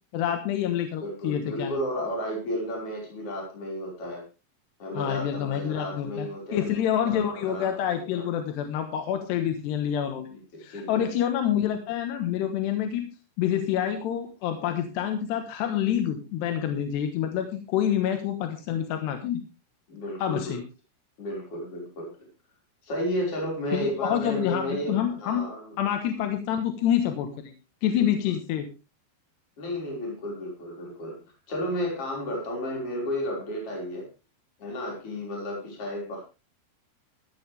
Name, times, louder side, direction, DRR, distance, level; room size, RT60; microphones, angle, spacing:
voice 1, 0.1-1.8 4.9-10.3 10.6-13.1 13.4-19.4 20.2-20.6 23.7-25.5 25.8-27.5 27.8-28.7, left 10 dB, 75° left, 7 dB, 3.3 m, -27 dB
voice 2, 1.0-4.2 4.8-6.7 7.0-8.3 10.3-11.1 19.9-20.6 21.2-22.3 22.8-25.7 27.8-28.0 29.6-31.2 31.5-34.1 34.6-36.2, equal, 30° left, -1 dB, 6.0 m, -33 dB
15.0 x 13.0 x 3.4 m, 0.29 s
omnidirectional pair, 5.1 m